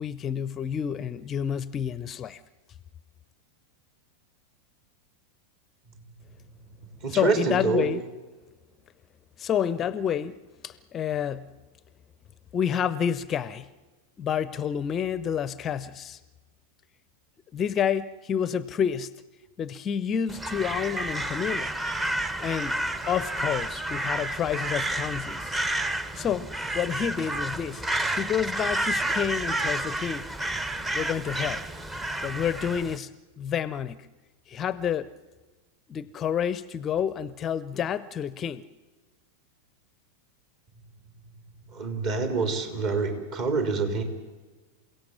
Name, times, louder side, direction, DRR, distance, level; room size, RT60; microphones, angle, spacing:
voice 1, 0.0-2.4 7.1-8.0 9.4-11.5 12.5-13.7 14.2-16.2 17.5-19.1 19.6-21.7 22.4-22.8 23.1-25.5 26.1-27.8 28.1-30.3 30.9-31.7 32.2-33.1 33.4-34.1 34.5-35.1 35.9-38.6, left 8 dB, 25° left, 0.6 m, -29 dB
voice 2, 7.0-7.9 41.7-44.0, right 4 dB, 45° right, 3.9 m, -26 dB
Crow, 20.3-33.0, right 1 dB, 15° right, 1.0 m, -30 dB
28.0 x 17.0 x 7.4 m
figure-of-eight pair, 90°, 0 cm